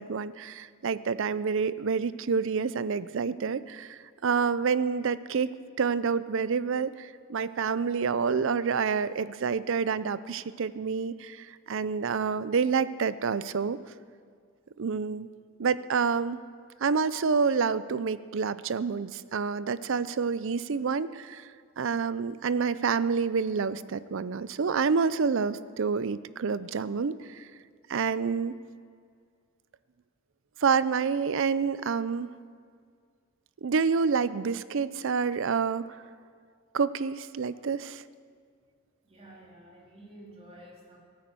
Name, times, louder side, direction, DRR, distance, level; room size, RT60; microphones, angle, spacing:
voice 1, 0.0-5.5 5.8-13.8 14.8-15.3 15.6-16.4 16.8-27.5 27.9-28.5 30.6-32.3 33.6-36.0 36.7-38.0, right 5 dB, 65° right, 16 dB, 0.5 m, -28 dB
voice 2, 39.0-41.0, right 1 dB, 30° right, -3 dB, 3.0 m, -50 dB
16.5 x 9.4 x 7.6 m, 2.1 s
head